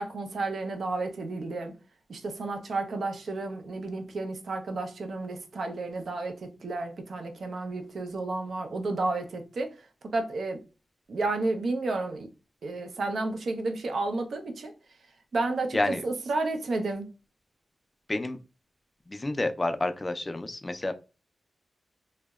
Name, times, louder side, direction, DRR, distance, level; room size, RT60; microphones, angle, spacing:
voice 1, 0.0-1.7 2.1-9.7 10.1-10.6 11.1-12.3 12.6-14.7 15.3-15.8 16.0-17.1, right 2 dB, 65° right, 0.5 m, -31 dB
voice 2, 15.7-16.0 18.1-18.4 19.1-20.9, left 2 dB, 20° left, 0.3 m, -29 dB
2.7 x 2.0 x 2.2 m
wide cardioid pair, 120°, 0 cm